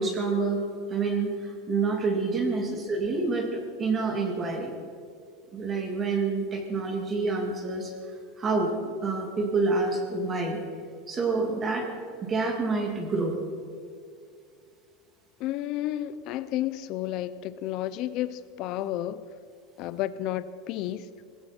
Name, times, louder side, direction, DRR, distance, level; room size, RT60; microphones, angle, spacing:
voice 1, 0.0-4.8 5.5-7.9 8.4-8.8 9.0-10.6 11.1-11.9 12.3-13.4, right 3 dB, 20° right, 2 dB, 2.3 m, -27 dB
voice 2, 15.4-19.2 19.8-21.1, left 13 dB, 45° left, 14 dB, 0.6 m, -32 dB
20.0 x 16.0 x 4.4 m, 2.3 s
supercardioid pair, 160°, 0 cm